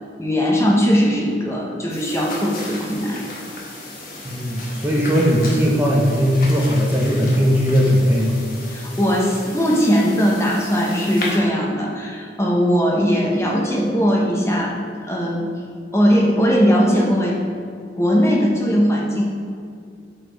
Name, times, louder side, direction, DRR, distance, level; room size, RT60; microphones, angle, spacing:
voice 1, 0.2-3.2 8.7-15.5 15.9-17.4 17.9-19.3, equal, 15° left, -2 dB, 0.9 m, -19 dB
sound 1, 1.9-11.4, left 2 dB, 50° left, 1.3 m, -35 dB
voice 2, 4.2-8.4, equal, 10° right, -4 dB, 0.7 m, -18 dB
6.6 x 4.8 x 4.5 m, 2.3 s
head